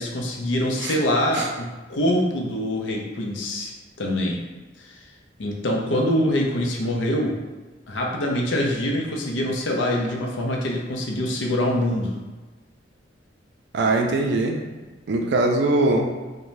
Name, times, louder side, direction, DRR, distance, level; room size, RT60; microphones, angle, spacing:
voice 1, 0.0-3.7 4.0-4.4 4.8-4.9 5.4-7.4 7.9-12.1, left 1 dB, 80° left, 0 dB, 0.5 m, -24 dB
voice 2, 13.7-14.6 15.1-16.1, right 2 dB, 65° right, 2 dB, 0.4 m, -21 dB
2.6 x 2.1 x 3.1 m, 1.3 s
head